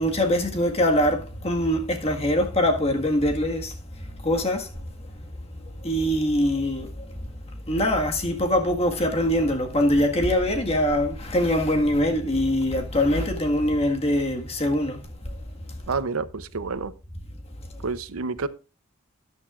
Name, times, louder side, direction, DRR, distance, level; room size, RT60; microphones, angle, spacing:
voice 1, 0.0-3.7 4.2-4.7 5.8-6.9 7.7-15.0, left 1 dB, 30° left, 1.7 m, -23 dB
voice 2, 15.9-16.9 17.8-18.5, right 4 dB, 90° right, 0.7 m, -29 dB
13.0 x 10.5 x 2.5 m
head